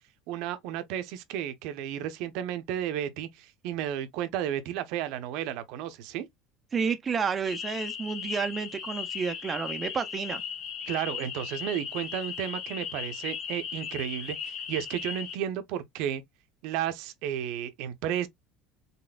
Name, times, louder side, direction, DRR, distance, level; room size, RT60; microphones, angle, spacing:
voice 1, 0.3-6.3 10.9-16.2 16.6-18.3, right 10 dB, 65° right, 0.7 m, -33 dB
voice 2, 6.7-10.4, right 6 dB, 20° right, 0.5 m, -30 dB
sound 1, 7.4-15.4, left 7 dB, 40° left, 1.0 m, -37 dB
4.0 x 3.5 x 2.3 m
cardioid pair, 150°, 0 cm